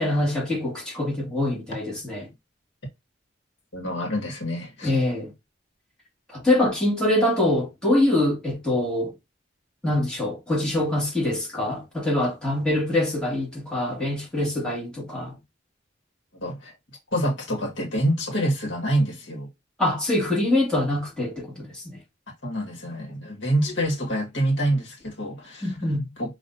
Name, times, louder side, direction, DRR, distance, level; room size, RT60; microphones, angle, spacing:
voice 1, 0.0-2.3 4.8-5.3 6.3-9.1 9.8-15.4 19.8-22.0 25.6-26.1, left 1 dB, 5° left, 2.1 m, -24 dB
voice 2, 3.7-4.9 16.3-16.7 17.1-19.5 22.4-25.7 26.2-26.4, equal, 65° left, 1.7 m, -26 dB
5.6 x 2.9 x 2.6 m
head